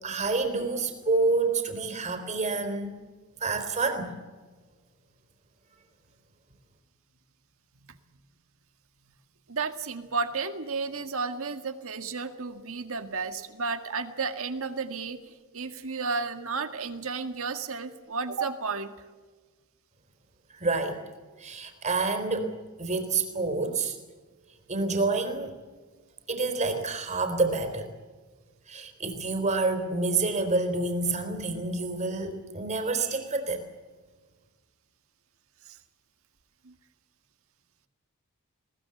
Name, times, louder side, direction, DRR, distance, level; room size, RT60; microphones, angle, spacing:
voice 1, 0.0-2.9 3.4-4.2 20.5-21.0 21.4-22.5 22.8-24.0 24.7-25.6 26.3-27.9 28.7-33.6, right 3 dB, 30° right, 6 dB, 3.8 m, -28 dB
voice 2, 9.5-18.9 35.7-35.8 36.6-36.7, right 4 dB, 65° right, 8 dB, 1.8 m, -32 dB
21.5 x 19.0 x 7.9 m, 1.4 s
head